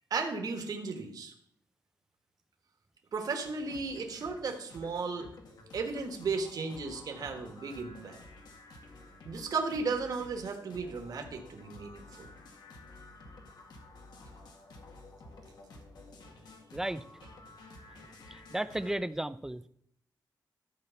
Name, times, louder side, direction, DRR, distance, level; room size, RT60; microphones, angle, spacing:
voice 1, 0.1-1.3 3.1-5.3 5.7-8.2 9.2-12.3, right 4 dB, 60° right, 3 dB, 1.5 m, -35 dB
sound 1, 3.4-18.9, left 2 dB, 75° left, 2.1 m, -52 dB
voice 2, 16.7-17.0 18.3-19.7, right 1 dB, 5° right, 14 dB, 0.4 m, -34 dB
13.0 x 4.6 x 7.0 m, 0.70 s
wide cardioid pair, 125°, 7 cm